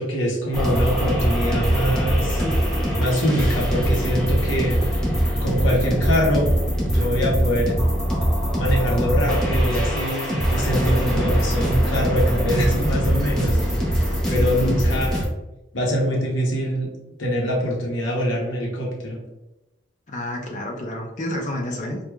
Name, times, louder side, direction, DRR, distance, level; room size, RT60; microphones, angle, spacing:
voice 1, 0.0-2.4 3.0-4.8 5.4-6.5 6.8-7.7 8.6-10.2 10.5-13.6 14.3-15.2 15.7-16.9 17.2-19.2, equal, 85° left, -2 dB, 0.9 m, -24 dB
sound 1, 0.5-15.2, equal, 5° left, 0.6 m, -22 dB
voice 2, 14.4-15.1 20.1-22.0, left 1 dB, 40° left, 0 dB, 0.6 m, -28 dB
4.6 x 2.4 x 2.3 m, 0.97 s
head